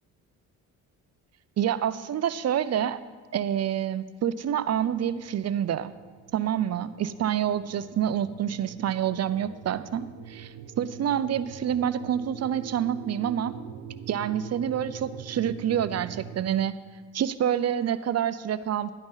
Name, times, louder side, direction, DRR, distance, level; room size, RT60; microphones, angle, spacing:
voice 1, 1.6-3.0 3.3-5.9 6.3-13.5 14.1-16.7 17.1-18.9, right 9 dB, 45° right, 15 dB, 0.6 m, -27 dB
sound 1, 4.4-16.4, right 8 dB, 90° right, 0.7 m, -44 dB
12.0 x 9.6 x 4.0 m, 1.4 s
supercardioid pair, 60°, 35 cm